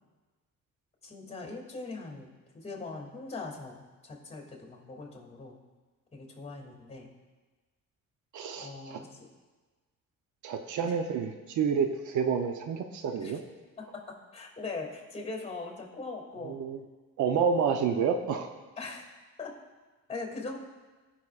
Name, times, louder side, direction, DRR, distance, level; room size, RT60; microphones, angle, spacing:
voice 1, 1.0-2.3 2.5-5.6 6.1-7.1 8.5-9.3 10.8-11.0 13.2-13.4 13.8-14.0 14.3-16.6 18.8-19.1 19.4-19.5 20.1-20.6, left 3 dB, 20° left, 1 dB, 2.3 m, -41 dB
voice 2, 8.3-9.0 10.4-13.4 16.4-16.8 17.2-18.5, right 6 dB, 80° right, 6 dB, 0.7 m, -29 dB
15.5 x 5.7 x 2.4 m, 1.3 s
cardioid pair, 90°, 30 cm